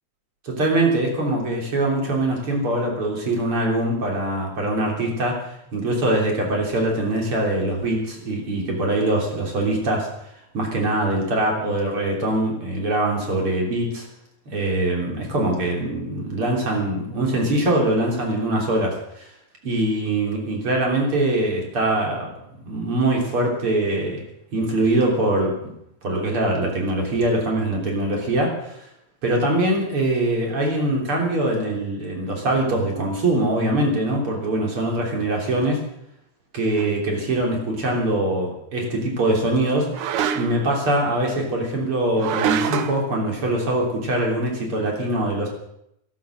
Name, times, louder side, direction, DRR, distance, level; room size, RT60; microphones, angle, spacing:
voice 1, 0.4-14.1 14.5-19.3 19.6-22.4 22.7-24.2 24.5-25.7 26.0-28.8 29.2-35.9 36.5-39.9 40.3-45.5, right 1 dB, 45° right, 0 dB, 4.2 m, -23 dB
sound 1, 36.8-36.9 39.9-40.7 42.2-43.0, right 8 dB, 65° right, 1.5 m, -25 dB
12.5 x 12.0 x 7.6 m, 0.78 s
omnidirectional pair, 3.3 m